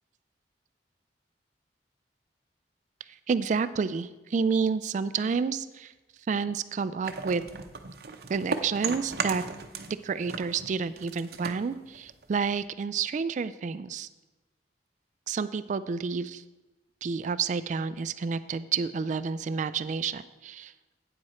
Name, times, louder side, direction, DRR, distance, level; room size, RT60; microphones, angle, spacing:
voice 1, 3.3-5.9 6.3-7.4 8.3-9.4 10.0-14.1 15.3-16.4 17.0-20.7, right 5 dB, 45° right, 14 dB, 0.3 m, -29 dB
sound 1, 7.0-10.0 10.3-12.6, right 5 dB, 60° right, 0.7 m, -36 dB
8.9 x 7.6 x 4.3 m, 1.1 s
head